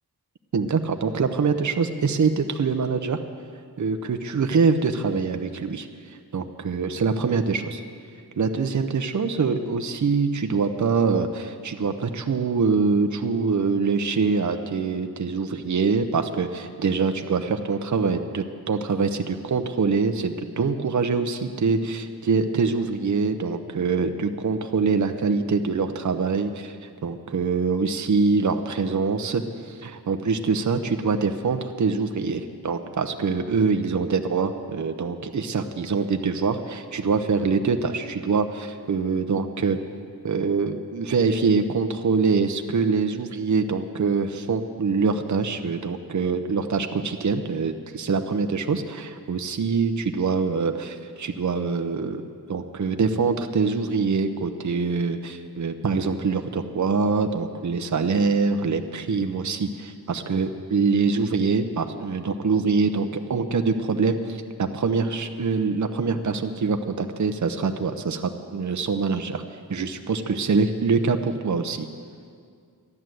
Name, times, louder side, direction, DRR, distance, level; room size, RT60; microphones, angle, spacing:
voice 1, 0.5-3.2 3.8-5.9 6.3-7.8 8.4-26.8 27.0-39.8 40.2-69.4 69.7-71.9, right 4 dB, 50° right, 7 dB, 0.8 m, -24 dB
13.5 x 11.0 x 7.7 m, 2.2 s
wide cardioid pair, 100°, 38 cm